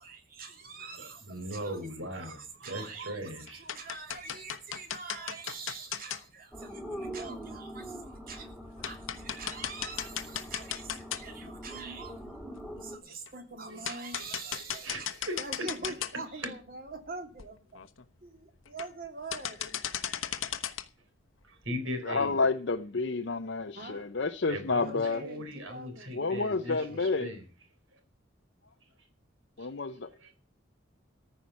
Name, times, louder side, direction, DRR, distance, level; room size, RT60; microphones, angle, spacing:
voice 1, 0.0-1.3 1.5-1.8 2.1-8.5 8.8-12.4 12.8-17.8 18.2-19.7 23.7-24.1 24.8-27.2, right 4 dB, 45° right, 2.8 m, -44 dB
voice 2, 0.8-3.6 13.7-13.8 14.6-15.4 16.3-16.5 21.4-22.4 24.5-27.4, equal, 75° right, 3.9 m, -39 dB
sound 1, 2.8-3.1 3.5-6.2 7.3-7.4 7.9-8.0 8.4-8.5 8.8-11.5 11.9-12.0 13.3-13.4 13.8-16.1 16.4-16.5 17.1-17.2 17.4-17.5 17.7-18.0 18.6-19.0 19.3-20.9, left 9 dB, 85° left, 1.0 m, -36 dB
sound 2, 6.5-13.0, equal, 5° right, 2.0 m, -43 dB
voice 3, 22.0-25.2 26.1-27.3 29.6-29.9, left 4 dB, 60° left, 0.7 m, -29 dB
14.0 x 5.8 x 9.2 m
head